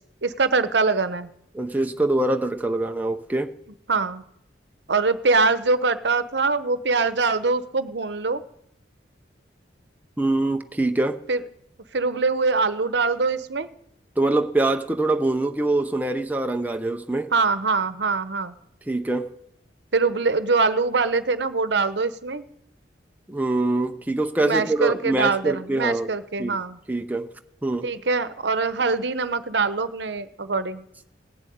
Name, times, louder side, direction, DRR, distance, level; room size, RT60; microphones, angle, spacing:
voice 1, 0.2-1.3 3.9-4.2 4.9-8.4 11.3-11.4 11.9-13.7 17.3-18.5 19.9-22.4 24.4-26.8 27.8-30.8, right 4 dB, 70° right, 12 dB, 0.9 m, -23 dB
voice 2, 1.5-3.5 10.2-11.2 14.2-17.3 18.9-19.3 23.3-26.1 26.4-26.6 26.9-27.3 27.6-27.9, right 2 dB, 10° right, 5 dB, 0.6 m, -24 dB
17.0 x 7.6 x 9.3 m, 0.77 s
head